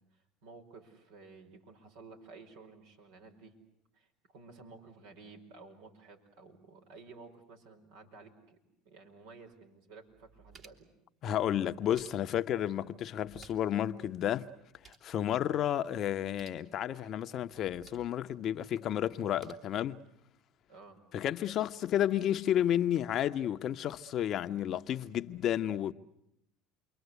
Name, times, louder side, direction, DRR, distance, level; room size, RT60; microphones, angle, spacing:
voice 1, 0.0-3.5 3.9-8.6 8.8-10.9 20.7-21.1, right 4 dB, 75° right, 5.1 m, -54 dB
sound 1, 10.1-11.0 11.7-12.5 13.2-13.8 14.1-14.2 14.5-15.1 16.2-16.6 17.5-18.2 19.1-19.5, right 5 dB, 45° right, 3.1 m, -58 dB
voice 2, 11.2-14.5 14.9-20.0 21.1-25.9, left 11 dB, 50° left, 0.9 m, -31 dB
28.5 x 23.0 x 8.2 m
hypercardioid pair, 80°, 0 cm